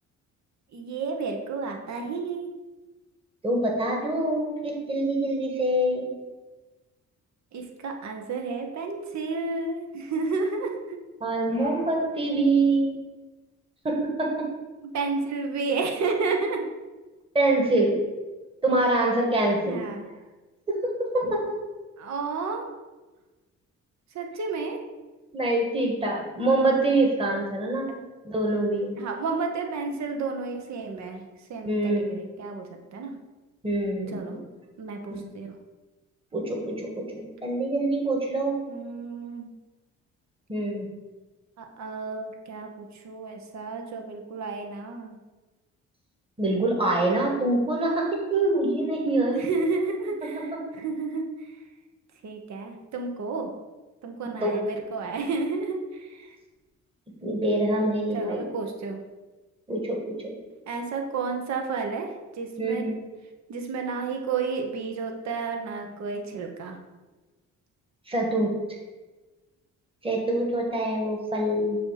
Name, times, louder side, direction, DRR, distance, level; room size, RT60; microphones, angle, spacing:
voice 1, 0.7-2.5 7.5-11.0 14.8-16.7 19.6-20.1 22.0-22.7 24.1-24.8 29.0-33.1 34.1-34.4 34.8-35.6 38.7-39.5 41.6-45.2 49.3-51.6 52.2-53.5 54.0-56.4 58.1-59.0 60.7-62.9 63.5-66.8, right 4 dB, 65° right, 3 dB, 1.1 m, -31 dB
voice 2, 3.4-6.1 11.2-12.9 13.8-14.5 17.3-18.0 18.6-19.8 20.7-21.4 25.3-27.9 28.2-29.0 31.7-32.2 33.6-34.2 35.1-35.3 36.3-38.6 40.5-40.9 46.4-49.4 54.4-54.6 57.2-58.4 59.7-60.3 62.6-62.9 68.1-68.5 70.0-71.8, right 2 dB, 20° right, -1 dB, 1.6 m, -25 dB
6.7 x 2.8 x 5.7 m, 1.2 s
cardioid pair, 90°, 30 cm